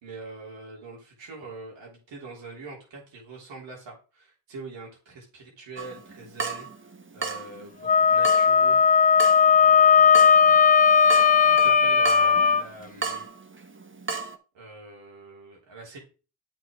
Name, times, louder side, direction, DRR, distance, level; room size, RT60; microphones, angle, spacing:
voice 1, 0.0-6.7 7.1-8.9 9.6-10.7 11.1-13.3 14.5-16.0, right 3 dB, 85° right, -2 dB, 3.4 m, -43 dB
Water tap faucet / Drip, 5.8-14.4, right 4 dB, 25° right, 1.1 m, -36 dB
Wind instrument woodwind instrument, 7.8-12.6, left 6 dB, 20° left, 0.3 m, -17 dB
8.2 x 6.2 x 3.7 m, 0.34 s
supercardioid pair, 45°, 44 cm